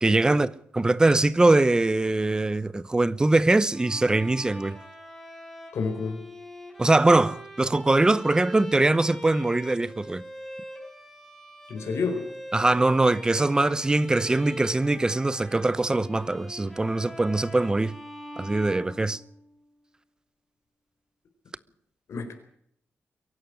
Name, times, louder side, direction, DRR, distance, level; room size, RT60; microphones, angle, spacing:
voice 1, 0.0-4.8 6.8-10.2 12.5-18.0 18.4-19.2, right 2 dB, 15° right, 0.8 m, -22 dB
Bowed string instrument, 3.7-19.6, equal, 5° left, 4.3 m, -43 dB
voice 2, 5.7-6.2 11.7-12.2 22.1-22.3, left 4 dB, 80° left, 4.4 m, -29 dB
23.0 x 11.5 x 9.7 m
wide cardioid pair, 145°, 5 cm